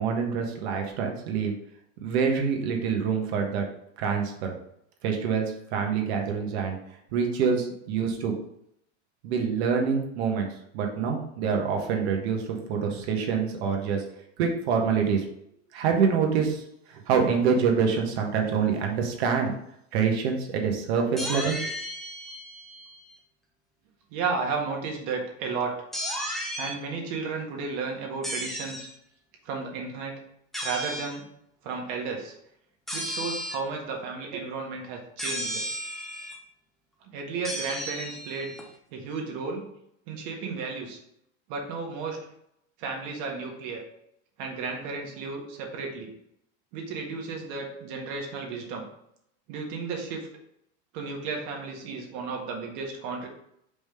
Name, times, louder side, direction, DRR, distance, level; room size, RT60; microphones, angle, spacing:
voice 1, 0.0-1.5 2.0-3.6 4.0-4.5 5.0-5.4 5.7-6.8 7.1-8.3 9.2-10.5 10.7-14.0 14.4-15.2 15.7-16.6 16.9-19.5 19.9-21.6, right 6 dB, 65° right, 2 dB, 1.5 m, -26 dB
sound 1, 21.2-23.1 25.9-26.8 28.2-28.9 30.5-31.2 32.9-33.7 35.2-36.4 37.4-38.6, equal, ahead, 0.4 m, -34 dB
voice 2, 24.1-25.7 26.6-28.9 29.4-30.2 30.6-31.2 31.6-32.3 32.9-35.6 37.0-38.5 38.9-39.6 40.1-41.0 41.5-42.2 42.8-43.8 44.4-46.1 46.7-48.9 49.5-50.3 50.9-53.3, right 4 dB, 50° right, 1 dB, 1.6 m, -33 dB
5.1 x 3.8 x 4.9 m, 0.76 s
supercardioid pair, 165°, 35 cm